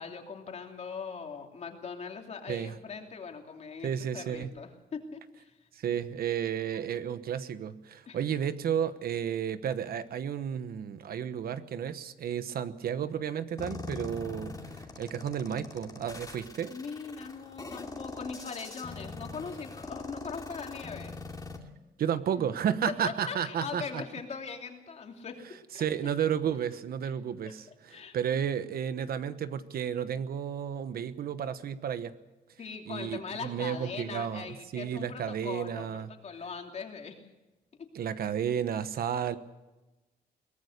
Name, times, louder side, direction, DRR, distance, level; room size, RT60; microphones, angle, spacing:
voice 1, 0.0-5.6 8.1-8.2 16.7-21.2 22.9-23.0 23.3-25.9 27.9-28.2 32.6-37.2 37.8-37.9, left 5 dB, 45° left, 3 dB, 2.9 m, -41 dB
voice 2, 3.8-4.5 5.7-16.7 22.0-24.0 25.7-32.1 32.8-36.1 37.9-39.4, right 8 dB, 70° right, 12 dB, 1.1 m, -32 dB
sound 1, 13.6-21.6, left 3 dB, 20° left, 2.4 m, -42 dB
23.0 x 18.5 x 6.6 m, 1.1 s
wide cardioid pair, 160°, 16 cm